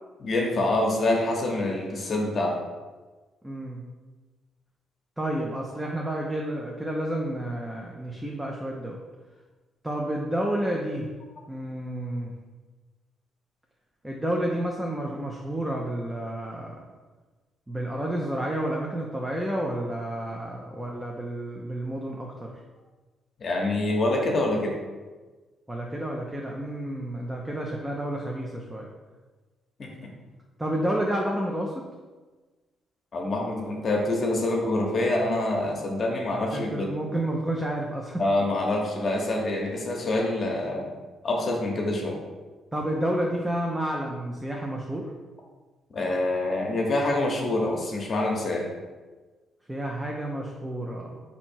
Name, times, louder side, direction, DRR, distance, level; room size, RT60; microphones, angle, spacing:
voice 1, 0.2-2.6 23.4-24.8 29.8-30.1 33.1-36.9 38.2-40.9 41.2-42.2 45.9-48.7, left 2 dB, 45° left, 0 dB, 0.9 m, -26 dB
voice 2, 3.4-3.8 5.2-9.0 9.8-11.1 11.5-12.3 14.0-16.9 17.7-22.5 25.7-28.9 30.6-31.9 36.5-38.2 42.7-45.1 49.7-51.2, right 1 dB, 10° right, -1 dB, 0.6 m, -30 dB
4.3 x 2.8 x 4.4 m, 1.3 s
cardioid pair, 90°, 0 cm